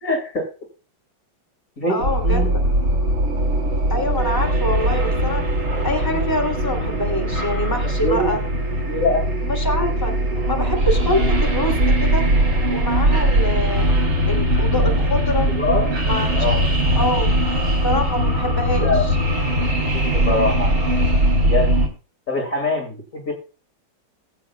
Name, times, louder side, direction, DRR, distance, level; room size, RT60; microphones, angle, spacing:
voice 1, 0.0-0.5 1.8-2.5 7.8-8.4 8.8-9.2 15.6-16.0 16.4-16.7 18.8-19.0 20.0-20.8 21.4-21.7 22.3-23.3, left 2 dB, 45° left, 1 dB, 2.4 m, -23 dB
voice 2, 1.9-2.5 3.9-5.4 5.8-8.4 9.4-10.1 10.5-12.2 12.7-13.9 14.3-15.5 16.0-16.6 16.9-17.3 17.8-19.1, left 1 dB, 10° left, 1 dB, 2.6 m, -25 dB
sound 1, 2.0-21.9, right 1 dB, 80° right, 3.7 m, -20 dB
21.0 x 7.6 x 2.2 m, 0.34 s
omnidirectional pair, 2.1 m